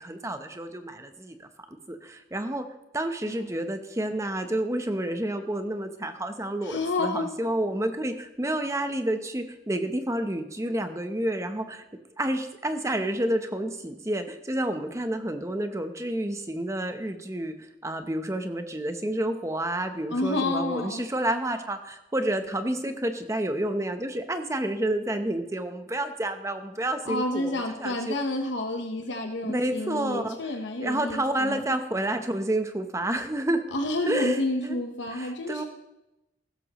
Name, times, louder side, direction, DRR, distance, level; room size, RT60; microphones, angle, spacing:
voice 1, 0.0-2.7 2.9-11.8 12.2-28.2 29.4-33.6 34.1-34.8 35.1-35.6, right 1 dB, 15° right, 7 dB, 0.8 m, -30 dB
voice 2, 6.6-7.3 20.1-21.0 27.0-31.6 33.7-35.6, left 2 dB, 70° left, 3 dB, 1.1 m, -29 dB
15.5 x 13.0 x 3.1 m, 0.95 s
head